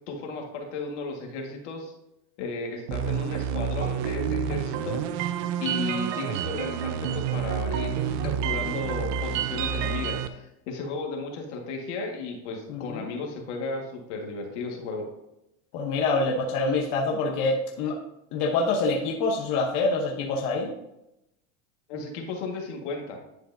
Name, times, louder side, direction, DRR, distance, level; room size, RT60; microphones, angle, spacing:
voice 1, 0.1-1.9 2.4-5.0 5.6-15.1 21.9-23.2, left 3 dB, 90° left, 1 dB, 1.8 m, -34 dB
sound 1, 2.9-10.3, right 8 dB, 60° right, 0.7 m, -29 dB
voice 2, 12.7-13.1 15.7-18.0 18.3-20.7, left 3 dB, 55° left, 0 dB, 1.1 m, -26 dB
10.5 x 4.9 x 2.7 m, 0.89 s
supercardioid pair, 130°, 34 cm